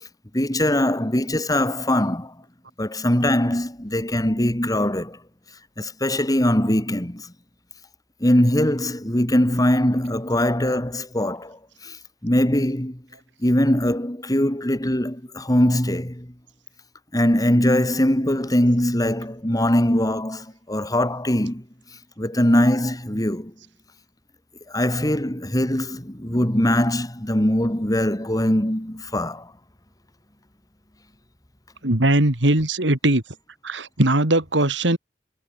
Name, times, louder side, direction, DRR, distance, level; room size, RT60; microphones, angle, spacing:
voice 1, 0.3-2.3 2.8-5.2 5.8-7.3 8.2-12.0 12.2-13.0 13.4-16.3 17.1-21.6 22.2-23.5 24.7-29.5, left 1 dB, 20° left, 2.6 m, -21 dB
voice 2, 31.8-33.2 33.6-35.0, right 1 dB, 85° right, 3.0 m, -20 dB
head